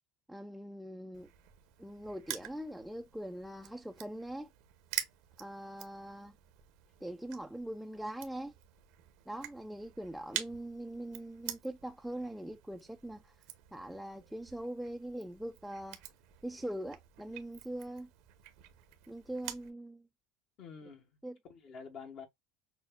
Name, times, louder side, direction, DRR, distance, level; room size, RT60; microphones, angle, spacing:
voice 1, 0.3-1.3 1.8-4.5 5.4-6.4 7.0-8.5 9.3-13.3 13.7-16.0 16.4-18.1 19.1-20.1 21.2-21.4, right 1 dB, ahead, 0.3 m, -42 dB
Crushing, 1.1-19.7, right 13 dB, 70° right, 0.8 m, -47 dB
voice 2, 20.6-22.3, left 6 dB, 55° left, 1.1 m, -49 dB
6.2 x 2.1 x 2.2 m
supercardioid pair, 95°, 0 cm